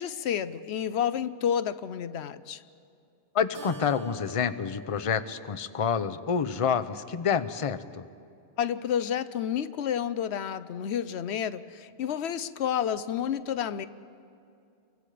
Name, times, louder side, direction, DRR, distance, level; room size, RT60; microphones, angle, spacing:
voice 1, 0.0-2.6 8.6-13.9, left 9 dB, 85° left, 1.0 m, -30 dB
voice 2, 3.3-8.1, left 6 dB, 35° left, 0.7 m, -28 dB
Keyboard (musical), 3.5-6.4, right 3 dB, 60° right, 1.3 m, -47 dB
30.0 x 24.0 x 5.0 m
omnidirectional pair, 1.1 m